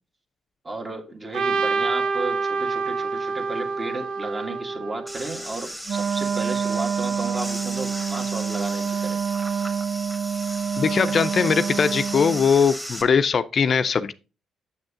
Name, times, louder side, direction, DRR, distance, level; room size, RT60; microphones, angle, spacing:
voice 1, 0.6-9.2, right 2 dB, 30° right, 1.8 m, -33 dB
Trumpet, 1.3-5.5, right 4 dB, 85° right, 0.7 m, -27 dB
sound 1, 5.1-13.0, equal, 5° right, 1.7 m, -36 dB
Wind instrument woodwind instrument, 5.9-12.5, right 6 dB, 65° right, 0.3 m, -27 dB
voice 2, 10.8-14.1, left 6 dB, 50° left, 0.4 m, -20 dB
7.0 x 6.5 x 3.7 m
cardioid pair, 90°, 0 cm